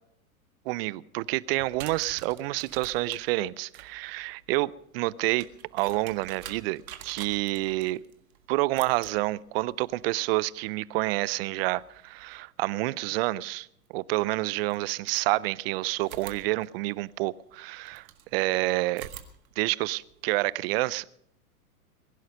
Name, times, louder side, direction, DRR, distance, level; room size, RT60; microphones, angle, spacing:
voice 1, 0.7-5.5 5.7-8.0 8.5-19.1 19.6-21.0, right 19 dB, 45° right, 0.5 m, -28 dB
sound 1, 1.6-12.4 13.9-14.0 14.7-15.6 16.0-18.3 18.9-20.9, right 10 dB, 70° right, 1.8 m, -49 dB
21.5 x 11.0 x 5.4 m
hypercardioid pair, 110°, 44 cm